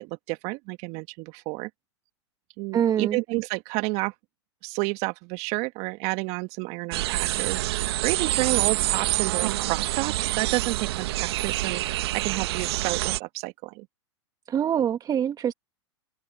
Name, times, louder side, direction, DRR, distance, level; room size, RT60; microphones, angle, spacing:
voice 1, 0.0-1.7 2.6-4.1 4.6-13.8, right 25 dB, 45° right, 1.5 m, -30 dB
voice 2, 2.7-3.2 14.5-15.5, right 9 dB, 25° right, 1.6 m, -24 dB
sound 1, 6.9-13.2, right 16 dB, 60° right, 1.5 m, -27 dB
hypercardioid pair, 105°, 15 cm